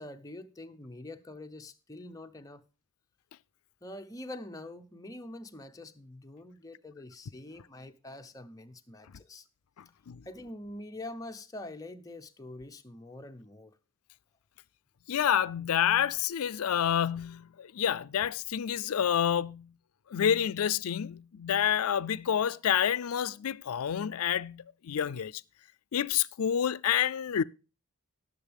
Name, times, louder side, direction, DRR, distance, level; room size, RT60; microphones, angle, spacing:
voice 1, 0.0-2.6 3.8-9.4 10.2-13.7, left 1 dB, 15° left, 0.7 m, -45 dB
voice 2, 15.1-19.7 20.1-25.3 25.9-27.4, left 9 dB, 75° left, 0.4 m, -28 dB
18.5 x 6.9 x 3.5 m
head